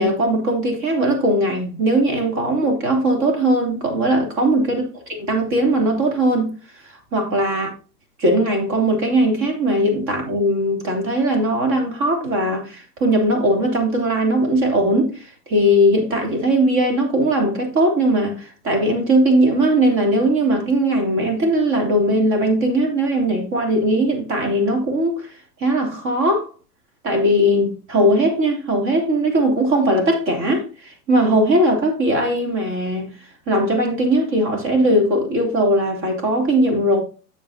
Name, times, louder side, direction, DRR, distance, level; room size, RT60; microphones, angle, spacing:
voice 1, 0.0-6.5 6.9-7.7 8.2-25.3 25.6-26.5 27.0-33.1 33.5-37.0, right 1 dB, 35° right, 3.2 m, -19 dB
9.4 x 7.2 x 2.9 m
hypercardioid pair, 110°, 46 cm